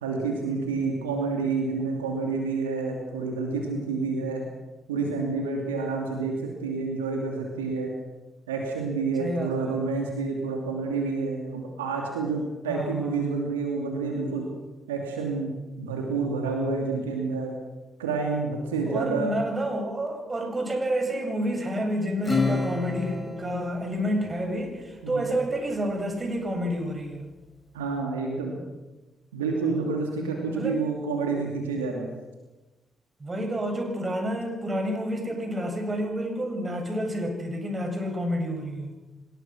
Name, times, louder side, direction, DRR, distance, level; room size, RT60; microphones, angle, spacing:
voice 1, 0.0-4.4 4.9-7.9 8.5-14.5 14.9-15.5 15.8-17.5 18.0-19.3 25.0-25.2 27.7-28.6 29.3-32.1, right 4 dB, 90° right, 1 dB, 2.8 m, -29 dB
voice 2, 9.2-9.8 12.7-13.3 18.9-27.3 30.5-30.8 33.2-38.9, equal, 30° right, 4 dB, 7.7 m, -29 dB
Acoustic guitar / Strum, 22.2-25.1, left 3 dB, 20° left, 5.0 m, -30 dB
26.0 x 19.5 x 6.3 m, 1.1 s
hypercardioid pair, 40°, 0 cm